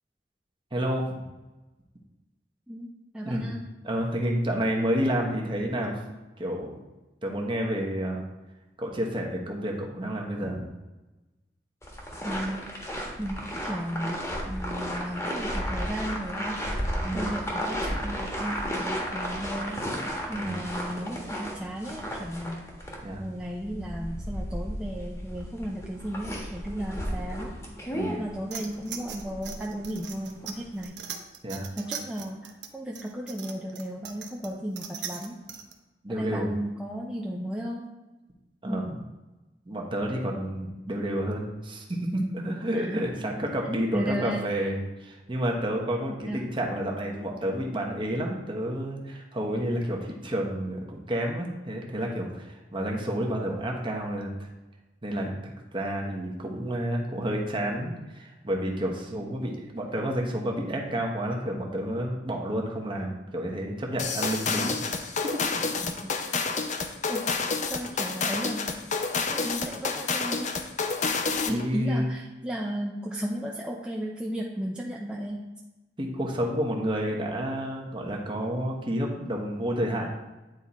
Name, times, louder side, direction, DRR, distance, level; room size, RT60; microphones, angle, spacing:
voice 1, 0.7-1.2 3.2-3.5 3.8-6.0 6.4-6.7 7.2-8.2 8.8-10.6 17.0-17.2 20.3-20.6 23.0-23.2 27.9-28.1 31.4-31.7 36.0-36.5 38.6-38.9 39.7-54.3 55.0-64.8 65.2-65.4 71.5-72.1 76.0-80.1, equal, 30° right, 0 dB, 1.1 m, -30 dB
voice 2, 2.7-3.6 12.2-12.7 13.2-16.6 17.1-19.8 20.3-22.6 23.2-27.5 28.1-31.0 31.8-35.4 36.1-37.9 38.7-38.8 42.7-43.1 43.9-44.5 46.1-46.4 59.1-59.3 64.5-64.8 67.1-67.3 67.7-68.7 69.3-70.6 71.5-75.4, equal, 5° right, -2 dB, 0.5 m, -34 dB
sound 1, 11.8-30.8, equal, 15° left, 1.2 m, -34 dB
sound 2, 28.5-35.7, right 7 dB, 85° right, 0.8 m, -40 dB
sound 3, 64.0-71.7, left 4 dB, 45° left, 0.6 m, -29 dB
9.1 x 3.6 x 4.2 m, 1.1 s
head